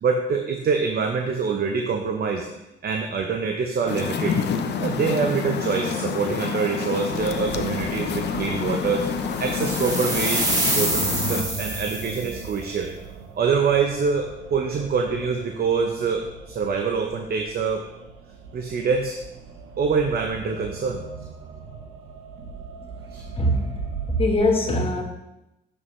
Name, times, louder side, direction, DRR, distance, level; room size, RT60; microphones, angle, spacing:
voice 1, 0.0-2.5 2.8-4.4 4.8-9.1 9.4-12.9 13.4-17.8 18.5-19.2 19.8-21.0 23.1-23.3, right 5 dB, 50° right, 3 dB, 0.8 m, -25 dB
sound 1, 3.9-11.4, left 6 dB, 60° left, 0.7 m, -28 dB
sound 2, 7.1-24.4, right 5 dB, 80° right, 0.9 m, -39 dB
sound 3, 9.4-12.4, right 1 dB, 20° right, 2.3 m, -26 dB
voice 2, 23.4-25.0, left 1 dB, 30° left, 1 dB, 1.3 m, -22 dB
7.1 x 6.2 x 3.2 m, 0.92 s
cardioid pair, 90°, 20 cm